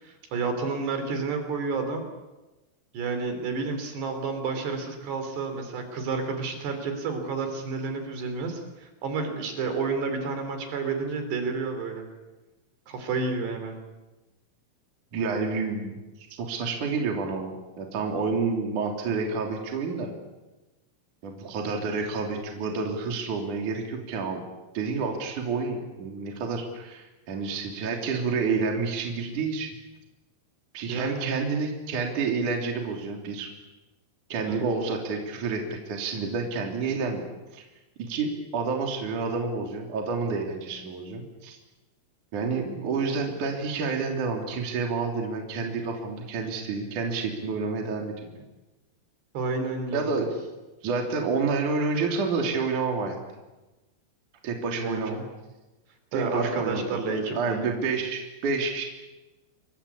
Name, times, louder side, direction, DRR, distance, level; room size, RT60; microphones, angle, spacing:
voice 1, 0.0-2.1 2.9-12.1 12.9-13.8 30.9-31.3 34.5-34.6 49.3-50.3 54.8-55.2 56.1-57.6, right 4 dB, 60° right, 6 dB, 5.4 m, -30 dB
voice 2, 15.1-20.1 21.2-24.4 24.7-29.7 30.7-33.5 34.3-37.2 37.5-37.6 38.0-41.6 42.3-48.4 49.9-50.4 50.8-53.2 54.4-55.2 56.1-58.9, right 4 dB, 45° right, 2 dB, 4.2 m, -29 dB
28.0 x 23.5 x 8.5 m, 1.1 s
omnidirectional pair, 5.6 m